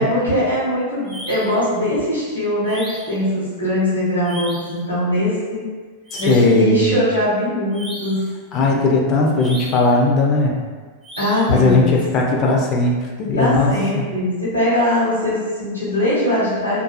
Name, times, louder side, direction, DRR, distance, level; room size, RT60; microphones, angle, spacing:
voice 1, 0.0-5.6 6.2-8.2 11.2-11.9 13.4-16.8, left 1 dB, 85° left, -9 dB, 1.1 m, -21 dB
sound 1, 1.1-1.6 2.7-3.2 4.2-4.8 6.1-6.6 7.7-8.3 9.4-10.0 11.0-11.6, right 1 dB, 20° right, 0.6 m, -35 dB
voice 2, 6.1-6.9 8.5-10.5 11.5-14.0, left 2 dB, 35° left, -1 dB, 0.4 m, -17 dB
2.5 x 2.4 x 2.3 m, 1.5 s
figure-of-eight pair, 90°, 0 cm